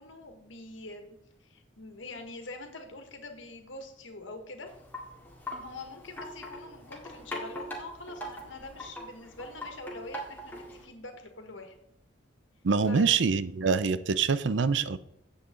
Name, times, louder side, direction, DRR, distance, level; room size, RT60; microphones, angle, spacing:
voice 1, 0.0-4.7 5.6-11.8 12.9-13.1, left 2 dB, 85° left, 5 dB, 1.7 m, -44 dB
Wind chime, 4.7-10.9, equal, 10° left, 2.0 m, -42 dB
voice 2, 12.6-15.0, right 5 dB, 70° right, 15 dB, 0.5 m, -25 dB
9.6 x 7.9 x 3.8 m, 0.79 s
head